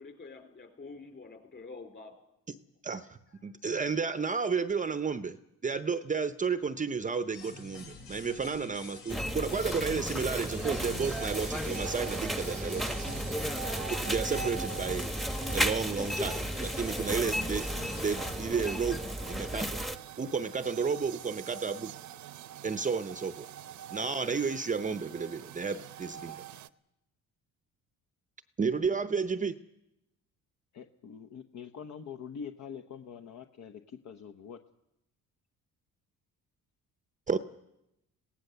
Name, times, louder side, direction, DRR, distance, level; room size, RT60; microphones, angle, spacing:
voice 1, 0.0-2.1, left 3 dB, 35° left, 5 dB, 4.0 m, -47 dB
voice 2, 2.8-5.4 5.6-12.9 13.7-15.1 15.5-17.7 18.0-19.0 19.3-19.8 20.2-21.9 22.6-23.5 23.9-26.4 28.6-29.5 37.3-37.4, right 5 dB, 25° right, 12 dB, 0.7 m, -32 dB
sound 1, 7.3-18.3, left 4 dB, 80° left, 6.1 m, -46 dB
sound 2, 9.1-20.0, equal, ahead, 0.9 m, -34 dB
sound 3, 10.3-26.7, right 10 dB, 60° right, 0.8 m, -45 dB
voice 3, 30.7-33.8 34.0-34.6, left 7 dB, 60° left, 7 dB, 1.0 m, -44 dB
23.5 x 17.0 x 6.8 m, 0.88 s
cardioid pair, 110°, 32 cm